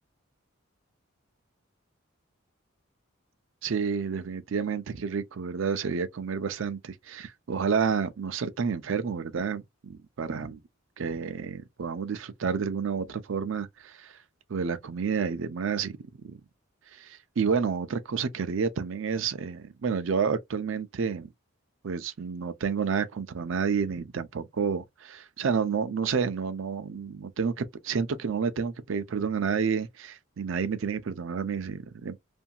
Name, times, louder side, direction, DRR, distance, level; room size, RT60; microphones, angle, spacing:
voice 1, 3.6-10.6 11.0-14.1 14.5-15.9 16.3-16.4 16.9-21.3 21.8-32.2, right 6 dB, 70° right, 0.5 m, -30 dB
2.7 x 2.6 x 2.2 m
head